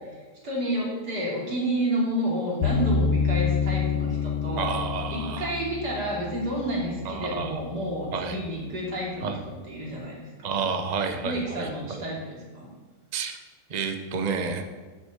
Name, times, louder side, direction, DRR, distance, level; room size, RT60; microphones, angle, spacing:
voice 1, 0.0-4.8 5.1-9.4 9.7-10.7 11.2-12.7, right 1 dB, 50° right, -4 dB, 3.4 m, -30 dB
sound 1, 2.6-7.7, left 5 dB, 85° left, 1.5 m, -28 dB
voice 2, 4.6-5.5 7.0-7.6 8.1-8.4 9.2-9.4 10.4-12.0 13.1-13.3 13.7-14.6, right 5 dB, 85° right, 6 dB, 0.3 m, -30 dB
8.0 x 6.5 x 8.3 m, 1.4 s
omnidirectional pair, 2.3 m